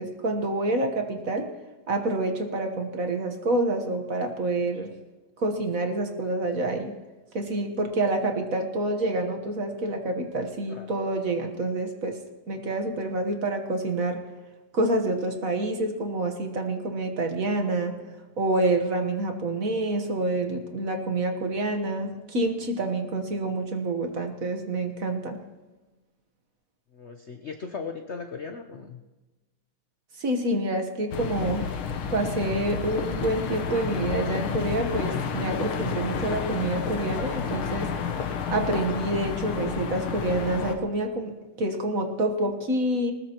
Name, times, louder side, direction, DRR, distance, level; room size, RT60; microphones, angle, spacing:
voice 1, 0.0-1.5 1.9-4.9 5.4-7.0 7.3-12.2 12.5-14.2 14.7-18.0 18.4-25.4 30.2-31.8 32.1-37.9 38.5-43.1, right 2 dB, 45° right, 5 dB, 1.4 m, -27 dB
voice 2, 26.9-29.0, left 5 dB, 60° left, 5 dB, 0.7 m, -37 dB
sound 1, 31.1-40.8, left 6 dB, 85° left, 2.0 m, -30 dB
20.0 x 19.5 x 3.0 m, 1.2 s
omnidirectional pair, 2.3 m